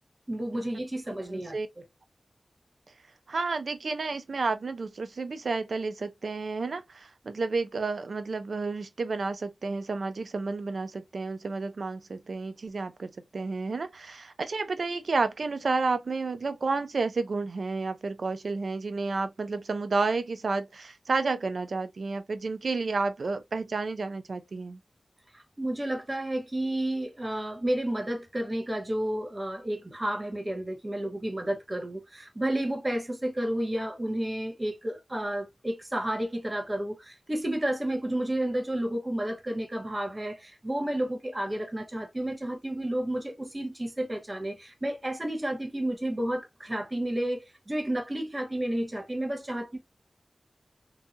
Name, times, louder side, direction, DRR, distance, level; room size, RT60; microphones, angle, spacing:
voice 1, 0.3-1.6 25.3-49.8, right 1 dB, 30° right, 0.9 m, -31 dB
voice 2, 1.1-1.7 3.3-24.8, right 3 dB, 80° right, 0.4 m, -31 dB
2.7 x 2.3 x 2.5 m
wide cardioid pair, 60°, 0 cm